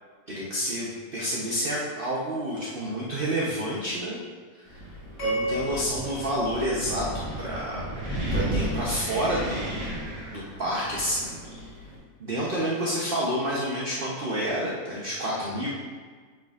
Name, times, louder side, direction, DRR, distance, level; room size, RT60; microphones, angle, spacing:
voice 1, 0.3-4.2 4.7-4.8 5.2-7.0 7.4-7.8 8.3-9.9 10.3-11.7 12.2-15.7, equal, 45° right, -5 dB, 0.9 m, -29 dB
Wind, 4.7-12.0, right 1 dB, 20° right, 1.8 m, -34 dB
sound 1, 5.2-7.6, right 1 dB, 40° left, 2.0 m, -33 dB
9.4 x 4.9 x 2.4 m, 1.5 s
omnidirectional pair, 1.6 m